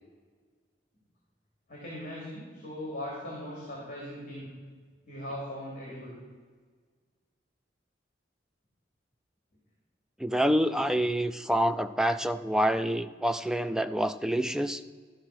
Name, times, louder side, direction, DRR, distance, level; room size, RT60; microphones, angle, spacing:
voice 1, 1.7-4.5 5.0-6.2, left 1 dB, 45° left, -4 dB, 2.6 m, -39 dB
voice 2, 10.2-14.8, equal, 5° right, 10 dB, 0.3 m, -27 dB
13.0 x 5.2 x 5.9 m, 1.6 s
head